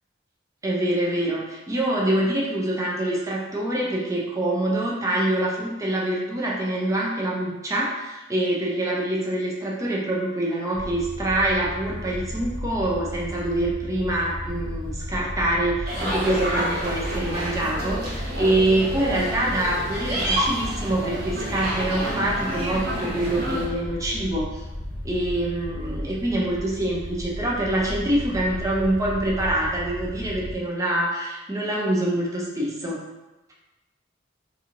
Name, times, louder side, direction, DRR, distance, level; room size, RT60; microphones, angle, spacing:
voice 1, 0.6-24.6 25.0-33.0, right 1 dB, 15° right, -4 dB, 0.4 m, -25 dB
sound 1, 10.7-30.6, equal, 40° left, 0.5 m, -34 dB
sound 2, 15.9-23.7, equal, 50° right, 0.9 m, -29 dB
2.8 x 2.7 x 2.5 m, 1.1 s
head